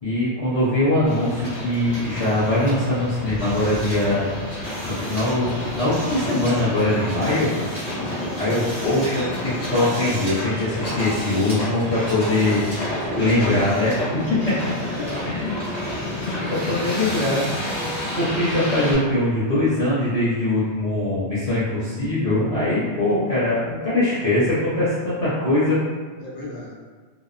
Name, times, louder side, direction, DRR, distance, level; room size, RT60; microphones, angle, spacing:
voice 1, 0.0-4.3 4.9-7.5 8.4-12.9 13.2-14.2 14.6-14.7 15.3-15.5 16.2-16.4 16.7-17.5 17.8-25.8, left 1 dB, 40° left, -12 dB, 0.6 m, -22 dB
Hiss, 1.1-18.9, left 1 dB, 25° left, 1.2 m, -29 dB
voice 2, 12.8-13.7 14.0-14.4 14.9-15.4 16.3-16.9 26.2-26.7, left 2 dB, 80° left, -6 dB, 1.1 m, -36 dB
2.8 x 2.0 x 2.4 m, 1.5 s
omnidirectional pair, 1.2 m